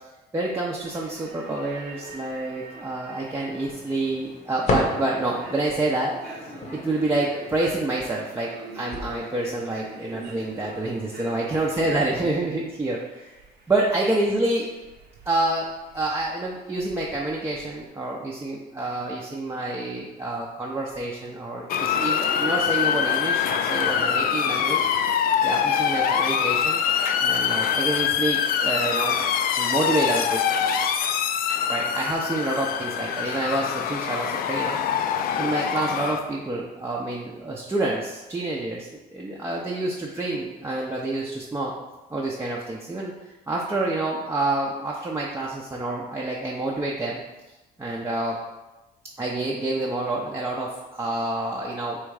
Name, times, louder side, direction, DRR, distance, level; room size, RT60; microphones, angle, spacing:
voice 1, 0.3-6.1 6.4-13.3 13.7-14.7 15.2-15.7 15.9-24.9 25.4-26.8 27.2-29.2 29.6-30.6 31.7-34.8 35.4-41.7 42.1-47.2 47.5-48.4 49.2-52.0, right 2 dB, 15° right, -4 dB, 0.6 m, -28 dB
sound 1, 0.8-17.9, right 3 dB, 70° right, 0.8 m, -46 dB
sound 2, 3.5-12.4, left 2 dB, 40° left, 0.8 m, -35 dB
Motor vehicle (road) / Siren, 21.7-36.2, left 8 dB, 60° left, 0.4 m, -24 dB
3.5 x 3.1 x 4.8 m, 1.1 s
cardioid pair, 110°, 17 cm